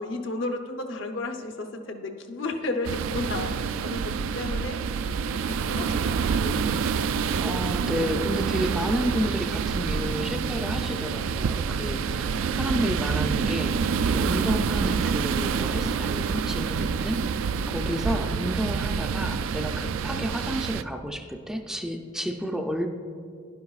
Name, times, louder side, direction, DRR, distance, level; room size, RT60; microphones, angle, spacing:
voice 1, 0.0-4.8 5.1-6.7, left 2 dB, 75° left, 4 dB, 0.8 m, -33 dB
sound 1, 2.8-20.8, right 6 dB, 90° right, 0.3 m, -27 dB
voice 2, 7.4-22.9, equal, 5° right, 3 dB, 0.3 m, -31 dB
11.0 x 10.5 x 2.4 m, 2.3 s
head